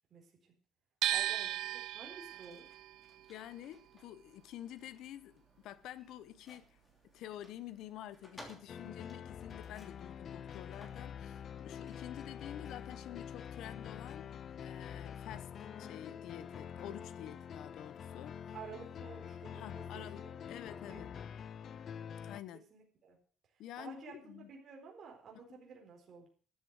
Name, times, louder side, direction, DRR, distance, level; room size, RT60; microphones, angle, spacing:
voice 1, 0.1-0.5 1.1-2.7 18.5-21.0 22.7-23.2 23.8-26.3, right 6 dB, 40° right, 4.2 m, -52 dB
sound 1, 1.0-7.0 7.3-8.6, right 15 dB, 75° right, 0.5 m, -39 dB
sound 2, 2.0-19.1, left 1 dB, 15° left, 2.9 m, -63 dB
voice 2, 3.3-6.8 7.1-14.3 14.6-18.4 19.5-21.1 22.2-22.7 23.6-24.5, left 12 dB, 75° left, 1.0 m, -49 dB
sound 3, 8.7-22.4, left 8 dB, 40° left, 0.6 m, -46 dB
13.0 x 8.3 x 7.9 m
cardioid pair, 165°, 0 cm